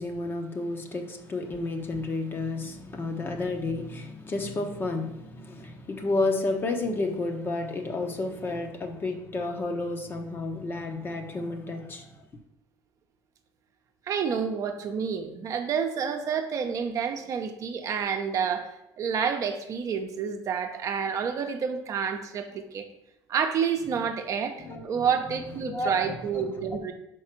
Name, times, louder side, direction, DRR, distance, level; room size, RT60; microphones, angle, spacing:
voice 1, 0.0-12.2 24.6-25.1 25.6-26.8, left 2 dB, 30° left, 5 dB, 0.9 m, -31 dB
voice 2, 14.1-18.7 19.0-22.9 23.3-24.5 24.8-26.9, right 7 dB, 45° right, 5 dB, 0.8 m, -29 dB
5.5 x 4.6 x 6.0 m, 0.85 s
cardioid pair, 130°, 8 cm